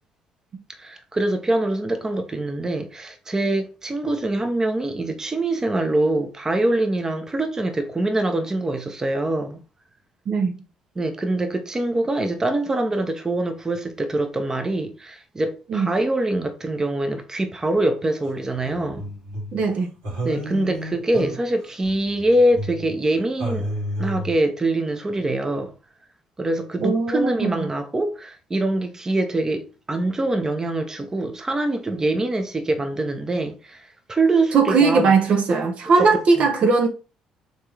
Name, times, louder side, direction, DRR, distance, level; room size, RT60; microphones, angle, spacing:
voice 1, 0.8-9.6 11.0-19.0 20.2-23.7 24.0-25.7 26.4-35.1 36.0-36.1 36.4-36.5, right 1 dB, 25° right, 0.8 m, -24 dB
sound 1, 18.2-19.6 20.0-23.1 23.4-24.4, right 1 dB, 75° right, 2.5 m, -31 dB
voice 2, 19.5-19.9 26.8-27.7 34.5-36.9, right 4 dB, 55° right, 0.8 m, -19 dB
4.1 x 3.5 x 3.4 m
hypercardioid pair, 55°, 2 cm